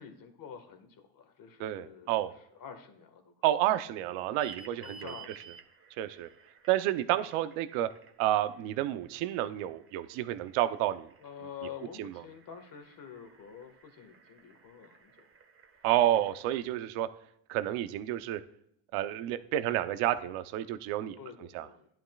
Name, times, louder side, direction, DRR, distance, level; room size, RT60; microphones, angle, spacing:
voice 1, 0.0-3.3 4.1-4.4 4.8-5.6 6.0-6.1 11.2-15.3 15.7-15.9 21.2-21.9, left 7 dB, 40° left, 6 dB, 1.8 m, -48 dB
voice 2, 1.6-2.3 3.4-5.1 6.0-6.3 6.7-7.9 8.2-11.1 12.0-12.1 15.8-17.1 17.5-18.4 18.9-21.2 21.5-21.7, right 13 dB, 75° right, 11 dB, 0.9 m, -30 dB
sound 1, 4.4-16.7, right 6 dB, 25° right, 1.5 m, -56 dB
15.0 x 11.0 x 2.4 m, 0.72 s
supercardioid pair, 105°, 50 cm